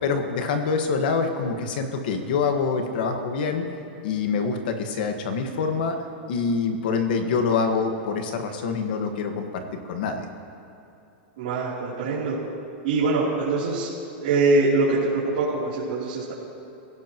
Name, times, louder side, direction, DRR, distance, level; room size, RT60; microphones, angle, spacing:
voice 1, 0.0-3.6 4.0-6.0 6.3-10.3, left 5 dB, 55° left, 5 dB, 1.6 m, -25 dB
voice 2, 11.4-12.4 12.8-13.9 14.2-16.3, right 3 dB, 55° right, -10 dB, 3.4 m, -23 dB
26.0 x 17.0 x 3.1 m, 2.8 s
supercardioid pair, 175°, 6 cm